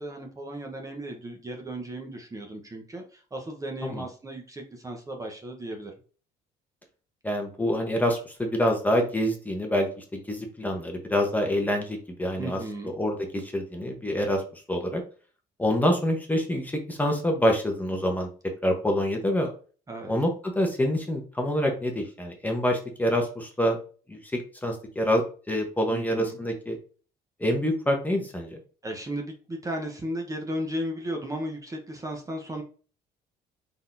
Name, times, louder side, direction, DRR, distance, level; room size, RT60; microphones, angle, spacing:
voice 1, 0.0-5.9 12.4-12.9 19.9-20.1 25.9-26.4 28.8-32.6, right 1 dB, 20° right, 2 dB, 0.9 m, -35 dB
voice 2, 7.2-12.6 13.0-14.4 14.7-15.0 15.6-18.3 18.6-19.5 20.1-23.8 24.1-26.8 27.4-28.6, equal, 10° left, 2 dB, 1.0 m, -26 dB
4.1 x 3.7 x 2.7 m, 0.39 s
cardioid pair, 110°, 17 cm